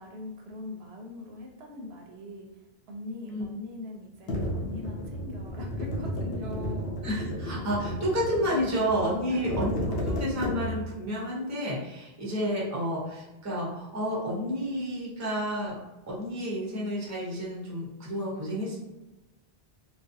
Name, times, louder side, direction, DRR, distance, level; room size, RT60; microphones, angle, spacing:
voice 1, 0.0-7.0 9.3-9.9, left 2 dB, 85° right, 1 dB, 0.8 m, -41 dB
sound 1, 4.3-11.0, left 1 dB, 70° left, 0.8 m, -33 dB
voice 2, 7.0-15.8 16.1-18.8, equal, 20° right, -4 dB, 0.6 m, -30 dB
2.4 x 2.2 x 2.6 m, 1.0 s
omnidirectional pair, 1.0 m